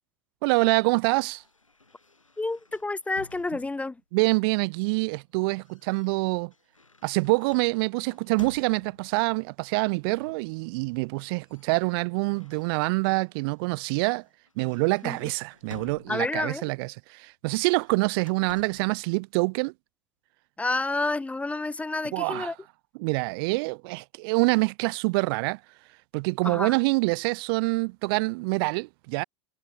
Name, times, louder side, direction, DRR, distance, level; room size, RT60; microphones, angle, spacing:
voice 1, 0.4-1.4 4.1-6.5 7.0-14.2 14.6-19.7 22.1-22.5 23.0-25.6 26.1-29.2, right 28 dB, 50° right, 0.7 m, -26 dB
sound 1, 0.9-4.0 4.9-9.2 10.2-10.6 10.8-13.2 13.6-13.8 14.2-16.6 17.5-19.0, left 3 dB, 85° left, 7.0 m, -51 dB
voice 2, 2.4-4.0 15.0-15.2 16.1-16.6 20.6-22.5 26.4-26.7, left 2 dB, 10° left, 1.0 m, -29 dB
figure-of-eight pair, 85°, 16 cm